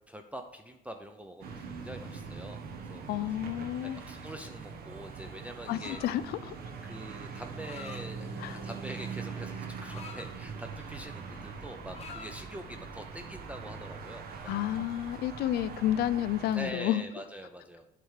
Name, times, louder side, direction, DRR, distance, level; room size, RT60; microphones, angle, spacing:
voice 1, 0.1-3.4 3.8-6.0 6.8-14.6 16.5-17.9, equal, 10° right, 0.5 m, -44 dB
sound 1, 1.4-16.7, right 5 dB, 60° right, 1.0 m, -42 dB
voice 2, 3.1-4.0 5.7-6.5 8.4-8.6 14.5-17.0, left 12 dB, 70° left, 0.4 m, -30 dB
sound 2, 5.8-6.3 7.3-8.0 8.9-10.3 10.8-11.0 11.3-12.4, left 4 dB, 40° left, 0.9 m, -47 dB
7.7 x 3.4 x 6.4 m
cardioid pair, 110°, 17 cm